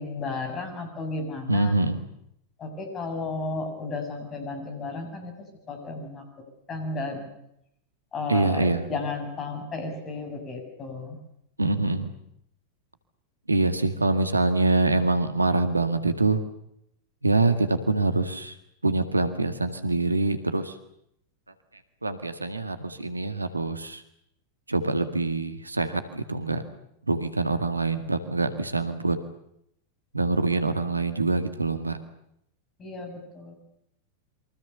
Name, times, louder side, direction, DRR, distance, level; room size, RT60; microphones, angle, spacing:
voice 1, 0.0-1.7 2.6-5.3 5.7-6.3 6.7-7.3 8.1-11.2 32.8-33.5, left 3 dB, 25° left, 6 dB, 7.2 m, -33 dB
voice 2, 1.5-2.1 8.3-8.8 11.6-12.1 13.5-16.4 17.2-18.5 18.8-20.8 22.0-24.0 24.7-26.6 27.0-29.2 30.1-32.0, right 2 dB, 80° right, 8 dB, 1.9 m, -25 dB
28.0 x 24.0 x 6.9 m, 0.77 s
figure-of-eight pair, 90°, 0 cm